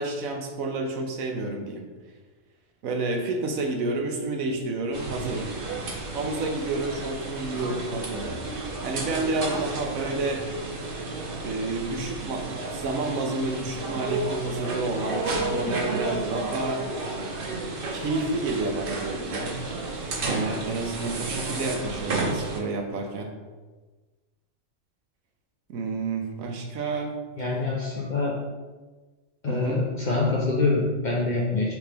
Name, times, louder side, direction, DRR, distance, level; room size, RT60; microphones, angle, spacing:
voice 1, 0.0-1.8 2.8-5.5 6.1-8.4 8.8-10.4 11.4-16.8 17.9-19.5 20.2-23.3 25.7-27.2 29.5-29.9, right 3 dB, 85° right, 3 dB, 1.2 m, -30 dB
sound 1, 4.9-22.6, right 2 dB, 50° right, 0.8 m, -32 dB
voice 2, 27.4-28.4 29.4-31.8, left 3 dB, 55° left, -3 dB, 0.5 m, -25 dB
4.8 x 3.2 x 3.3 m, 1.3 s
omnidirectional pair, 1.4 m